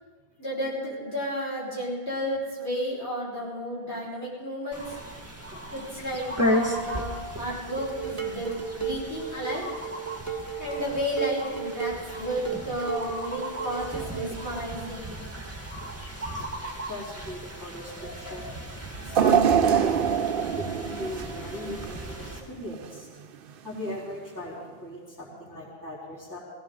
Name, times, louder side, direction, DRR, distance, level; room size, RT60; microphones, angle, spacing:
voice 1, 0.4-5.0 5.7-8.5 8.8-9.7 10.6-15.2, equal, 80° left, -7 dB, 5.4 m, -32 dB
sound 1, 4.7-22.4, equal, 15° right, 1.8 m, -35 dB
Dishes pots and pans, 7.8-14.4, right 6 dB, 30° right, 1.6 m, -35 dB
voice 2, 16.9-18.5 19.0-23.1 23.6-26.4, left 1 dB, 15° left, -7 dB, 3.6 m, -38 dB
sound 2, 19.1-22.3 22.7-22.9 23.9-24.0, right 8 dB, 60° right, 0.8 m, -24 dB
20.0 x 16.5 x 3.9 m, 1.5 s
omnidirectional pair, 1.1 m